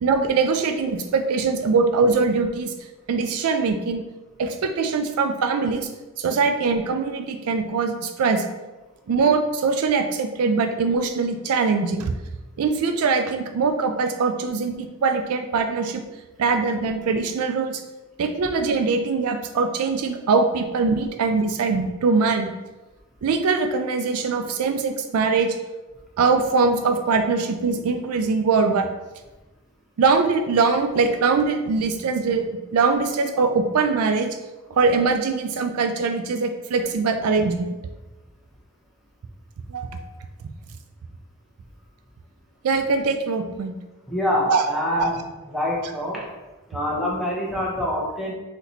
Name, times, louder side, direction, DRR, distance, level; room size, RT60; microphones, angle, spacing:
voice 1, 0.0-2.7 3.1-4.0 4.4-5.9 6.2-8.4 9.1-12.1 12.6-16.0 16.4-17.8 18.2-22.5 23.2-25.6 26.2-28.9 30.0-32.5 32.7-34.4 34.7-37.7 39.7-40.0 42.6-43.7 44.5-44.6 45.0-45.1, right 4 dB, 80° right, 6 dB, 0.4 m, -22 dB
voice 2, 44.1-45.2 45.5-46.3 46.7-48.3, left 1 dB, ahead, -5 dB, 0.8 m, -25 dB
4.1 x 2.9 x 4.1 m, 1.1 s
head